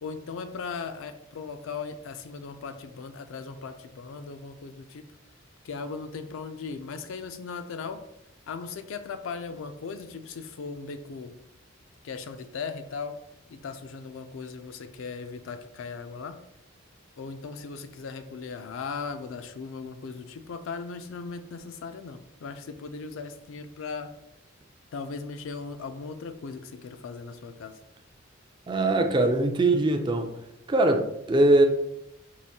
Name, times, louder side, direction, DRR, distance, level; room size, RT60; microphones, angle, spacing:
voice 1, 0.0-5.1 5.6-8.0 8.5-11.4 12.0-13.2 13.5-16.4 17.2-24.1 24.9-27.8, left 5 dB, 70° left, 0.4 m, -38 dB
voice 2, 28.7-30.4 30.7-31.7, right 2 dB, 20° right, 0.3 m, -22 dB
4.8 x 2.5 x 2.7 m
head